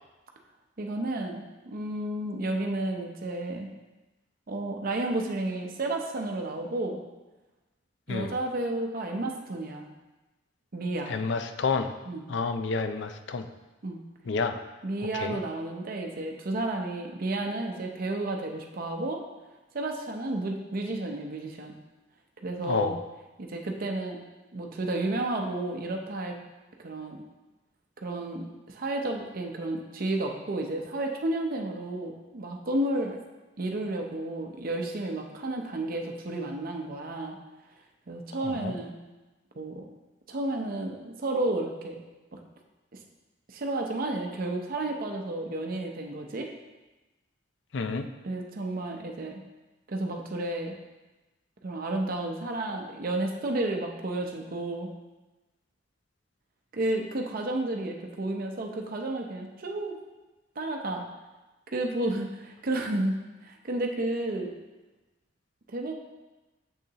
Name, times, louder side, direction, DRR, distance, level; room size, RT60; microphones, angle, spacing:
voice 1, 0.8-3.7 4.5-7.0 8.1-9.9 10.7-11.2 12.1-12.2 13.8-14.0 14.8-19.2 19.7-21.7 22.4-22.9 23.4-24.2 24.5-26.4 26.8-27.2 28.0-33.2 33.6-37.4 38.1-38.9 39.6-39.8 40.3-42.0 43.5-46.5 48.2-49.4 49.9-50.7 51.6-54.9 56.7-60.0 60.6-61.0 61.7-64.5 65.7-65.9, right 2 dB, 50° right, 2 dB, 0.7 m, -31 dB
voice 2, 11.1-11.9 12.3-13.5 14.3-14.6 15.1-15.4 22.6-22.9 38.4-38.7 47.7-48.1, left 4 dB, 70° left, 8 dB, 0.5 m, -29 dB
6.5 x 6.5 x 2.9 m, 1.1 s
head